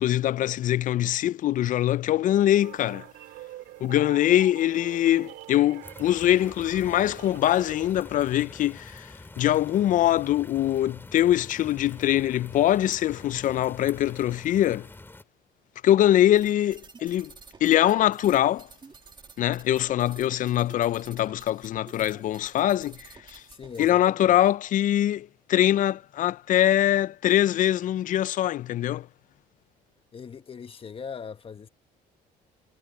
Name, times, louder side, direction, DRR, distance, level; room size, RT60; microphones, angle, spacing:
voice 1, 0.0-3.1 3.8-14.9 15.8-17.3 17.6-18.7 19.4-23.4 23.8-29.1, left 12 dB, 50° left, 0.4 m, -23 dB
sound 1, 2.6-7.9, right 16 dB, 85° right, 2.2 m, -45 dB
sound 2, 5.8-15.2, left 2 dB, 10° left, 3.1 m, -46 dB
sound 3, 16.4-23.9, right 4 dB, 25° right, 2.1 m, -50 dB
voice 2, 23.5-24.4 30.1-31.7, left 6 dB, 35° left, 1.4 m, -40 dB
cardioid pair, 110°, 17 cm